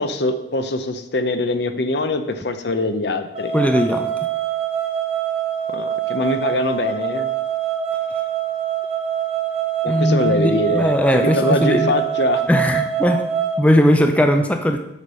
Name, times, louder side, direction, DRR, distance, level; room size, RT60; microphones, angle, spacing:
voice 1, 0.0-3.5 5.7-7.3 9.8-10.9 11.2-12.4, left 2 dB, 60° left, 9 dB, 0.7 m, -22 dB
sound 1, 3.3-13.6, right 9 dB, 30° right, 1.4 m, -24 dB
voice 2, 3.5-4.1 9.9-11.9 12.5-13.2 13.6-14.8, equal, 5° left, 5 dB, 0.5 m, -18 dB
8.3 x 5.2 x 6.3 m, 0.87 s
head